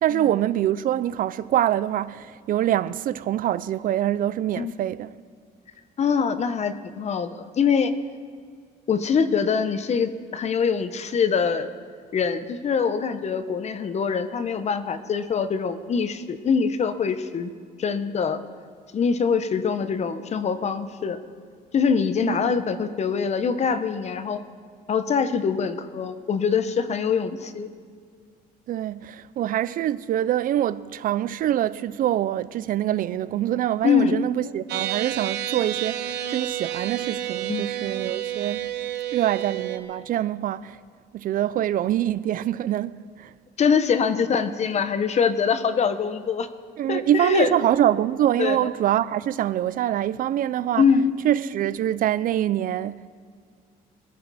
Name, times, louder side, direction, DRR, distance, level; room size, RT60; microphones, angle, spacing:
voice 1, 0.0-5.1 22.2-22.5 28.7-38.6 39.1-40.8 41.1-43.3 46.8-50.9 51.2-53.1, right 12 dB, 55° right, 0.5 m, -25 dB
voice 2, 6.0-7.9 8.9-11.7 12.1-17.5 17.8-18.4 18.9-21.2 21.7-24.4 24.9-27.7 33.8-34.2 37.5-37.6 43.6-46.5 46.9-47.5 48.4-48.6 50.8-51.0, left 6 dB, 40° left, 1.0 m, -23 dB
sound 1, 34.7-39.8, right 12 dB, 80° right, 1.1 m, -30 dB
21.5 x 13.0 x 4.2 m
cardioid pair, 110°, 17 cm